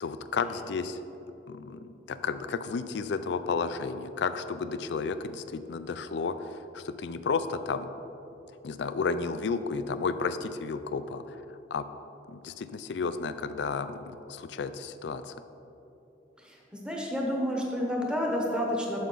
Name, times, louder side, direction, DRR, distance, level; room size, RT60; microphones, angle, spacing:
voice 1, 0.0-1.0 1.5-7.9 8.6-11.4 11.7-11.9 12.3-15.3, left 5 dB, 70° left, 11 dB, 0.4 m, -32 dB
voice 2, 16.5-19.1, equal, 5° right, -1 dB, 1.0 m, -30 dB
9.4 x 6.6 x 3.9 m, 2.9 s
head